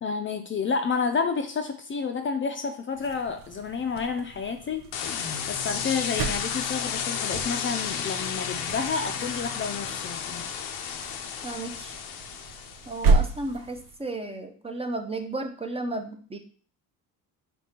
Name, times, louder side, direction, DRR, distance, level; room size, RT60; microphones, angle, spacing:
voice 1, 0.0-4.9 5.5-10.4, left 5 dB, 35° left, 7 dB, 0.4 m, -30 dB
sound 1, 2.9-14.1, right 4 dB, 70° right, 0.7 m, -32 dB
sound 2, 4.9-13.1, left 7 dB, 85° left, 0.6 m, -32 dB
voice 2, 11.4-12.0 12.9-16.4, right 2 dB, 15° right, 5 dB, 0.5 m, -33 dB
4.2 x 3.5 x 2.9 m, 0.43 s
cardioid pair, 100°, 36 cm